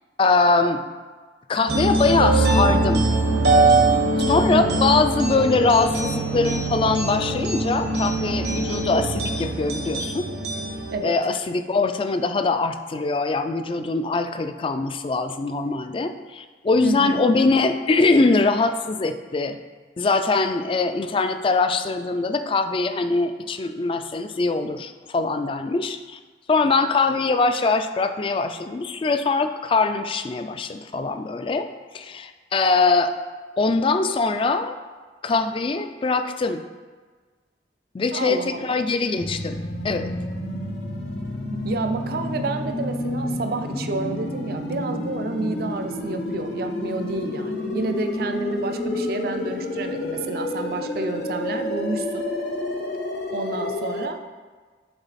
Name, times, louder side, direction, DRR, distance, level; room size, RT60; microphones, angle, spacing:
voice 1, 0.2-0.8 1.5-3.1 4.3-10.3 11.0-19.6 20.0-26.2 26.5-33.1 33.6-34.8 35.2-36.6 37.9-39.6 39.8-40.1, left 3 dB, 30° left, 9 dB, 0.3 m, -22 dB
Mysterious Ethereal Song, 1.7-10.9, right 2 dB, 75° right, 1.2 m, -22 dB
voice 2, 4.5-4.9 10.9-11.2 16.8-17.2 38.1-38.9 41.6-52.3 53.3-54.2, right 3 dB, 55° right, 7 dB, 0.5 m, -29 dB
sound 1, 39.2-54.1, left 1 dB, 65° left, 0.7 m, -29 dB
6.8 x 4.0 x 4.1 m, 1.4 s
head